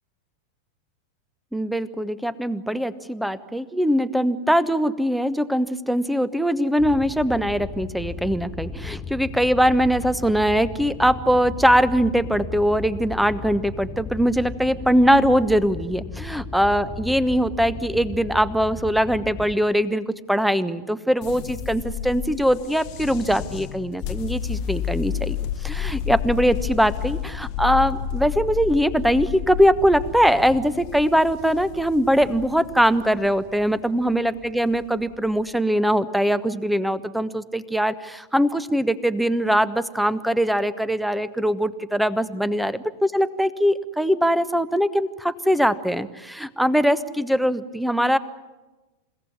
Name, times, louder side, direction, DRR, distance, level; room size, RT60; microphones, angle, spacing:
voice 1, 1.5-25.4 25.6-42.7 43.1-48.2, equal, ahead, 15 dB, 1.1 m, -21 dB
sound 1, 6.8-19.5, left 5 dB, 25° left, 1.9 m, -36 dB
sound 2, 21.2-35.4, left 10 dB, 45° left, 1.2 m, -31 dB
29.0 x 17.0 x 9.8 m, 1.2 s
figure-of-eight pair, 90°, 0 cm